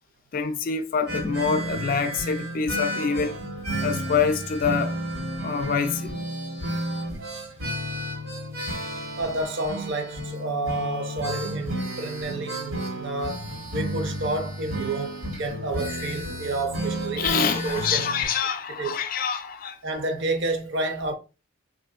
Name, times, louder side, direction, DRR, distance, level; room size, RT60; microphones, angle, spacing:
voice 1, 0.3-3.4 3.8-5.0 5.4-6.1 17.2-19.8, left 6 dB, 40° left, 0.3 m, -26 dB
sound 1, 1.1-18.3, equal, 85° right, 1.3 m, -32 dB
voice 2, 9.2-18.1 18.8-19.0 19.8-21.1, right 2 dB, 55° right, 0.6 m, -30 dB
3.5 x 2.6 x 2.3 m
head